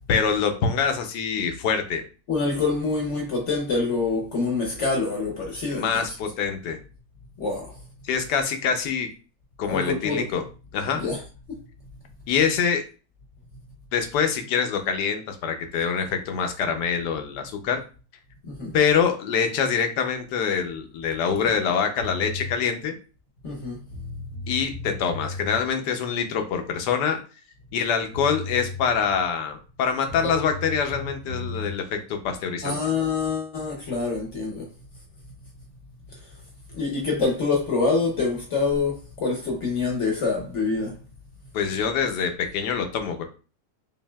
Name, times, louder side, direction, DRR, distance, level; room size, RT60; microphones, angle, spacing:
voice 1, 0.1-2.0 5.7-6.8 8.0-9.1 9.6-10.4 10.7-11.0 12.3-12.8 13.9-17.8 18.7-22.9 24.5-27.2 27.7-32.8 41.5-43.2, left 6 dB, 75° left, 1.2 m, -25 dB
voice 2, 2.3-6.1 7.4-7.8 9.7-10.3 10.9-11.2 11.5-11.6 18.4-18.7 23.4-23.8 32.6-34.7 36.1-36.2 36.7-41.0, left 4 dB, 55° left, 0.9 m, -26 dB
sound 1, 22.0-22.6 23.6-23.7 23.9-25.6 27.8-27.9 28.1-29.3 30.1-31.8, left 2 dB, 50° right, 1.2 m, -35 dB
5.2 x 2.7 x 2.2 m
omnidirectional pair, 1.8 m